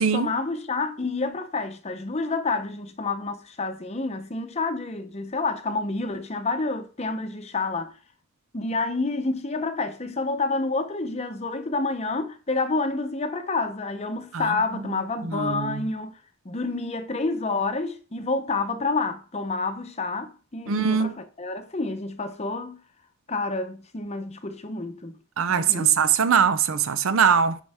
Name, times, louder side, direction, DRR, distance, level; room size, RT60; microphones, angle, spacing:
voice 1, 0.1-7.9 8.5-16.1 16.4-22.8 23.3-25.1 25.5-26.0, left 3 dB, 30° left, 0.7 m, -29 dB
voice 2, 15.3-15.7 20.7-21.1 25.4-27.6, right 7 dB, 70° right, 0.6 m, -21 dB
11.0 x 4.6 x 3.5 m
head